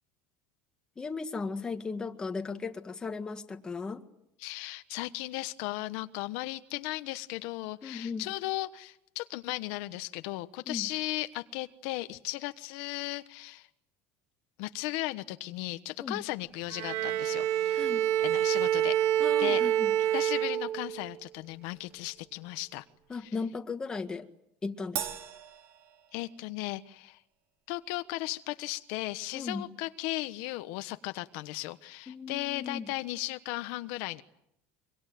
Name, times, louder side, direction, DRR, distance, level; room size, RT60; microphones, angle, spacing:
voice 1, 1.0-4.0 7.8-8.2 10.7-10.9 16.0-16.3 17.7-18.1 19.2-19.9 23.1-24.3 24.6-25.1 29.3-29.7 32.1-32.9, left 4 dB, 15° left, 6 dB, 1.8 m, -36 dB
voice 2, 4.4-13.7 14.6-17.8 18.2-19.0 19.4-19.6 20.1-22.8 23.2-23.3 26.1-27.2 27.7-34.2, left 18 dB, 70° left, 10 dB, 1.2 m, -36 dB
Bowed string instrument, 16.7-21.1, right 11 dB, 65° right, 1.2 m, -27 dB
Crash cymbal, 25.0-26.6, right 9 dB, 50° right, 2.8 m, -39 dB
25.0 x 24.5 x 9.4 m, 0.76 s
cardioid pair, 160°, 6 cm